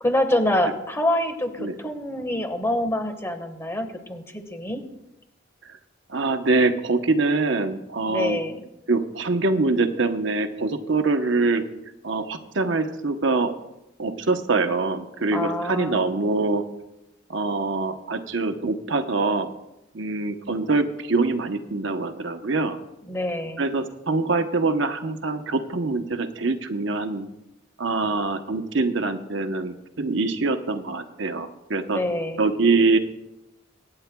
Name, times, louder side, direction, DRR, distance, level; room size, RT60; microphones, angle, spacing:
voice 1, 0.0-4.8 8.1-8.6 15.3-16.1 23.1-23.7 31.9-32.4, left 1 dB, 15° left, 5 dB, 1.4 m, -26 dB
voice 2, 6.1-8.4 8.9-11.7 12.0-13.5 14.0-16.6 17.3-19.5 19.9-22.8 23.6-27.3 27.8-32.0 32.4-33.0, right 3 dB, 70° right, 7 dB, 0.9 m, -24 dB
24.5 x 9.7 x 2.3 m, 0.91 s
head